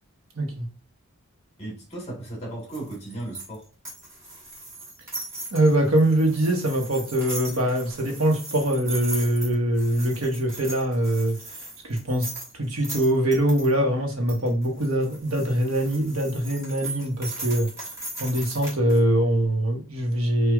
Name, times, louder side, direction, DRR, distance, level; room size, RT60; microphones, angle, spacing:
voice 1, 0.4-0.7 5.5-11.4 11.8-17.7 18.2-20.5, right 1 dB, 80° right, 1.1 m, -23 dB
voice 2, 1.6-3.7, right 1 dB, 30° left, 1.4 m, -36 dB
sound 1, 2.7-13.7 14.3-19.0, right 2 dB, 15° right, 1.3 m, -38 dB
4.5 x 2.4 x 2.3 m
head